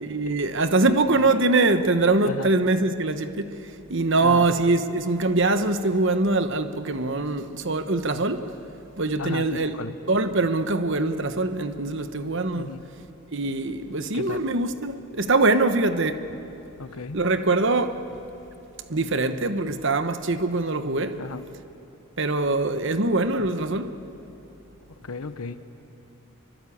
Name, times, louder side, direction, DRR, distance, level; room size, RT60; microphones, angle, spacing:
voice 1, 0.0-3.6 3.9-8.4 9.0-9.8 10.1-12.7 13.3-16.2 17.1-18.0 18.9-21.2 22.2-23.9, right 2 dB, 55° right, 1.1 m, -23 dB
voice 2, 9.2-9.9 12.6-12.8 14.1-14.5 16.8-17.2 21.2-21.4 24.9-25.6, left 4 dB, 80° left, 0.9 m, -35 dB
25.0 x 24.0 x 8.6 m
head